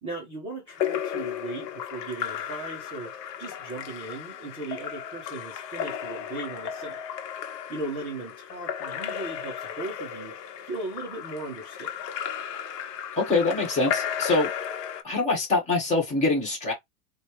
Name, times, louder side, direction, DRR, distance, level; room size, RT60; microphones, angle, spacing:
voice 1, 0.0-7.0 7.7-10.3 10.7-12.0, right 2 dB, 10° right, 0.4 m, -37 dB
Splash splatter / Drip / Trickle dribble, 0.7-15.0, left 9 dB, 80° left, 1.0 m, -34 dB
voice 2, 13.2-14.5 15.0-16.7, left 3 dB, 15° left, 1.4 m, -24 dB
4.2 x 2.3 x 3.1 m
supercardioid pair, 165°, 49 cm